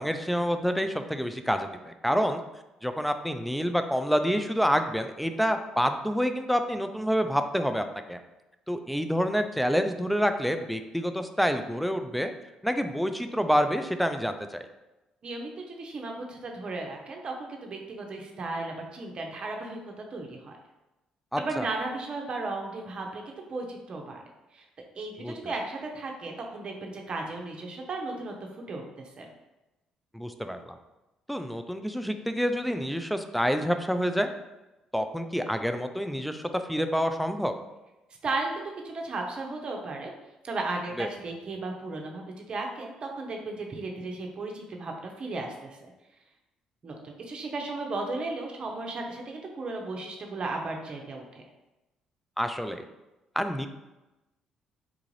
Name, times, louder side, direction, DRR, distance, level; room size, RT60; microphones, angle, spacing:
voice 1, 0.0-2.4 2.8-8.2 8.7-12.3 12.6-14.6 21.3-21.7 25.2-25.3 30.1-30.8 31.3-34.3 34.9-37.5 41.0-41.1 52.4-52.8 53.4-53.7, equal, ahead, 7 dB, 0.3 m, -27 dB
voice 2, 15.2-19.8 20.1-20.5 21.4-24.2 24.5-24.6 24.9-28.3 28.7-29.3 38.2-40.1 40.4-45.8 46.8-51.4, right 3 dB, 45° right, 1 dB, 0.7 m, -35 dB
3.8 x 2.4 x 3.1 m, 1.0 s
hypercardioid pair, 55°, 2 cm